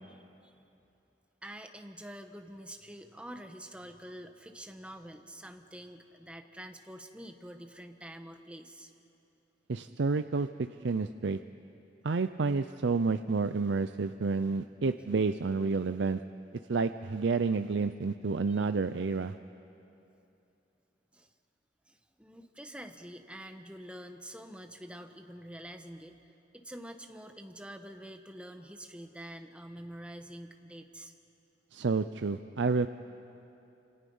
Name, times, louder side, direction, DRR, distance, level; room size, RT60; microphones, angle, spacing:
voice 1, 0.0-0.5 1.4-8.9 18.6-18.7 21.1-21.3 21.9-26.2 26.5-31.1, equal, 5° right, 6 dB, 1.1 m, -47 dB
voice 2, 9.7-10.5 10.8-11.4 12.0-16.2 16.7-19.4 31.7-32.9, right 4 dB, 75° right, 10 dB, 0.5 m, -29 dB
28.0 x 26.5 x 5.5 m, 2.8 s
head